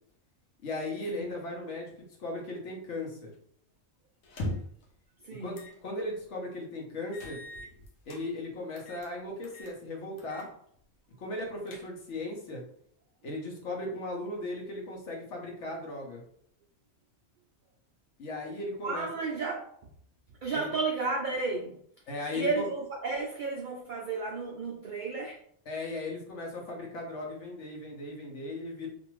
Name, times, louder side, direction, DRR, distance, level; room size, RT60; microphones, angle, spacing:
voice 1, 0.6-3.3 5.4-5.6 5.8-7.4 8.1-10.5 11.2-12.6 13.2-16.2 18.2-19.1 20.5-20.7 22.1-22.7 25.7-28.9, left 2 dB, 65° left, 0 dB, 1.1 m, -37 dB
sound 1, 4.2-4.8 5.5-5.8 6.2-6.3 7.1-8.2 8.8-9.1 9.4-9.8 10.2-10.5 10.8-10.9 11.4-12.2, left 1 dB, 90° left, 1.1 m, -40 dB
voice 2, 5.2-5.6 18.8-19.7 20.4-21.8 22.3-25.4, right 4 dB, 80° right, -1 dB, 0.4 m, -33 dB
2.6 x 2.5 x 3.0 m, 0.65 s
omnidirectional pair, 1.4 m